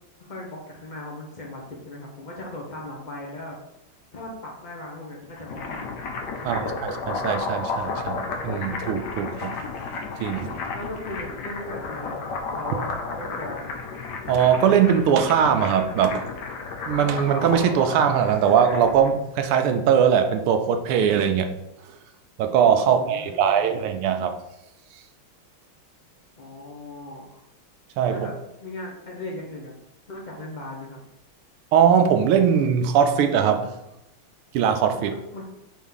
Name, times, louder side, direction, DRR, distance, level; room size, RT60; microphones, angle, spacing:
voice 1, 0.2-3.6 4.1-6.0 6.3-6.9 10.7-13.7 22.9-23.9 26.4-27.4 28.1-28.3 28.6-29.7 30.1-31.0 34.9-35.4, left 1 dB, 80° left, -2 dB, 0.4 m, -38 dB
sound 1, 5.2-19.1, left 4 dB, 65° left, 1.2 m, -33 dB
voice 2, 6.4-9.6 10.2-10.6 14.3-16.3 16.9-21.5 22.4-24.4 28.0-28.2 31.7-33.7 34.5-35.1, right 8 dB, 85° right, 6 dB, 1.6 m, -21 dB
5.1 x 3.6 x 5.5 m, 0.87 s
omnidirectional pair, 2.4 m